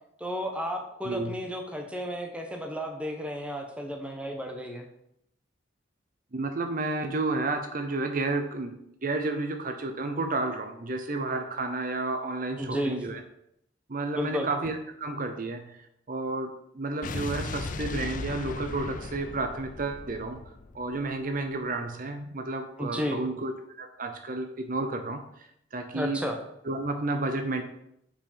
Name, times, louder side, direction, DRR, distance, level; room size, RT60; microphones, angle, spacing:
voice 1, 0.2-4.8 12.6-13.0 14.1-14.5 22.8-23.2 25.9-26.4, equal, 5° right, 3 dB, 1.0 m, -32 dB
voice 2, 1.0-1.4 6.3-13.2 13.9-15.8 16.1-20.4 20.7-25.2 25.7-26.2 26.7-27.6, right 2 dB, 50° right, 6 dB, 0.7 m, -31 dB
Explosion, 17.0-21.4, left 3 dB, 45° left, 0.6 m, -37 dB
7.0 x 5.2 x 5.7 m, 0.76 s
head